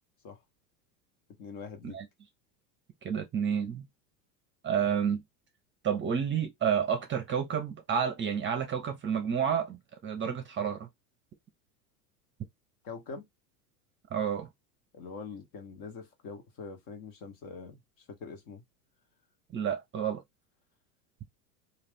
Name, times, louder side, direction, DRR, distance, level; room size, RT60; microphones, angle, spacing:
voice 1, 1.4-2.0 12.8-13.2 14.9-18.6, left 5 dB, 45° left, 1.1 m, -44 dB
voice 2, 3.0-3.9 4.6-5.2 5.8-10.9 14.1-14.5 19.5-20.2, right 7 dB, 25° right, 0.7 m, -30 dB
2.5 x 2.5 x 3.4 m
hypercardioid pair, 100°, 48 cm